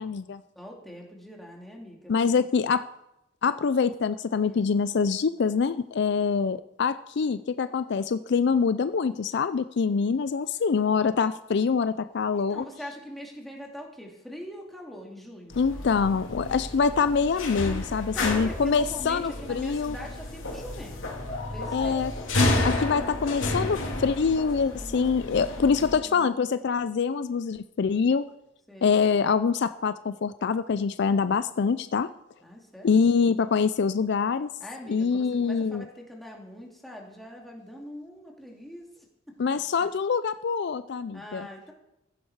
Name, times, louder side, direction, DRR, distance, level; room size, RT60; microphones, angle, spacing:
voice 1, 0.0-0.4 2.1-2.9 3.4-12.6 15.6-20.0 21.7-22.1 22.6-28.3 28.8-32.1 32.8-34.5 34.9-35.9 39.4-41.5, left 5 dB, 60° left, 13 dB, 0.4 m, -25 dB
voice 2, 0.6-2.5 4.4-4.7 12.3-15.6 18.1-21.1 21.5-22.2 24.7-26.5 28.7-29.0 32.4-32.9 34.6-39.6 41.1-41.7, equal, ahead, -1 dB, 2.4 m, -43 dB
sound 1, 15.5-26.0, left 2 dB, 80° left, 3.1 m, -31 dB
15.0 x 10.5 x 4.7 m, 0.87 s
head